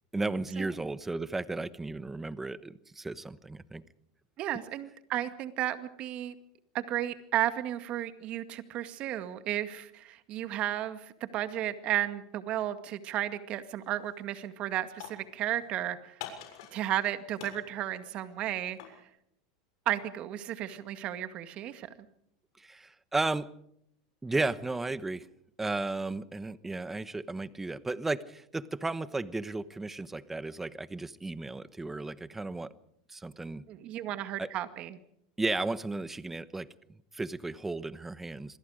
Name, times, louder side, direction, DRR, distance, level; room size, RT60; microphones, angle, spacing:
voice 1, 0.1-3.8 22.6-23.5 24.2-25.3 25.6-32.7 33.1-33.6 34.4-34.5 35.4-36.7 37.1-38.6, right 3 dB, 10° right, 16 dB, 1.1 m, -34 dB
voice 2, 4.4-6.3 6.7-16.2 16.7-18.8 19.9-21.9 33.7-35.0, right 12 dB, 45° right, 10 dB, 2.1 m, -33 dB
sound 1, 13.8-14.1 14.4-15.7 16.2-17.1 17.4-19.0, left 9 dB, 70° left, 6.9 m, -46 dB
27.0 x 21.5 x 5.1 m, 0.72 s
supercardioid pair, 120°, 3 cm